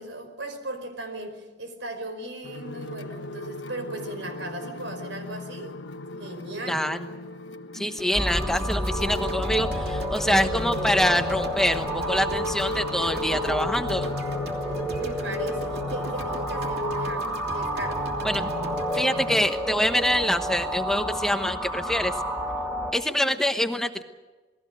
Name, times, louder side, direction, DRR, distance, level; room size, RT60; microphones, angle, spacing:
voice 1, 0.0-5.8 6.2-6.8 14.9-18.1, right 1 dB, 85° right, 8 dB, 5.1 m, -37 dB
sound 1, 2.4-19.4, left 3 dB, 80° left, 1.2 m, -36 dB
voice 2, 6.7-7.0 7.7-14.1 18.2-18.5 18.9-22.1 22.9-24.0, equal, 5° left, 6 dB, 1.0 m, -25 dB
sound 2, 8.0-20.2, right 1 dB, 60° right, 3.0 m, -42 dB
sound 3, 8.1-22.9, equal, 15° right, 3.7 m, -30 dB
28.5 x 20.5 x 6.5 m, 1.2 s
head